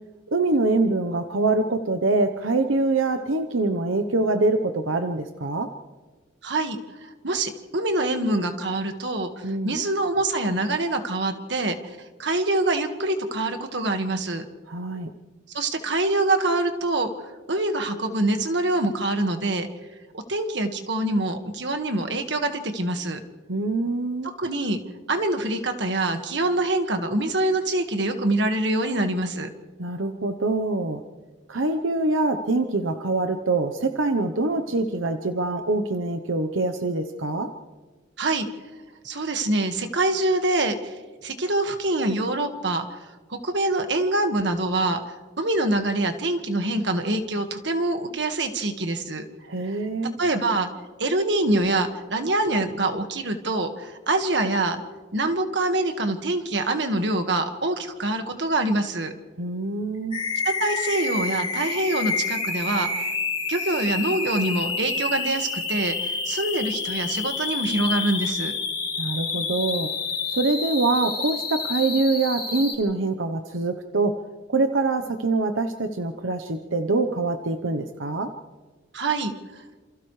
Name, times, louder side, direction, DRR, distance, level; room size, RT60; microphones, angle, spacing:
voice 1, 0.3-5.7 9.4-9.8 14.7-15.1 23.5-24.3 29.8-31.0 31.5-37.5 49.5-50.2 59.4-60.2 69.0-69.9 70.3-74.2 74.5-78.3, right 3 dB, 85° right, 7 dB, 1.0 m, -24 dB
voice 2, 6.4-14.5 15.5-19.7 20.1-23.2 24.2-24.8 25.1-29.5 38.2-38.5 39.0-43.0 43.3-45.0 45.4-49.2 49.6-49.8 50.2-50.7 51.0-54.8 55.1-59.1 60.5-63.1 63.5-68.6 78.9-79.3, right 2 dB, 60° right, 6 dB, 1.8 m, -25 dB
sound 1, 60.1-72.7, left 4 dB, 25° left, 4.3 m, -29 dB
28.5 x 28.0 x 3.3 m, 1.3 s
head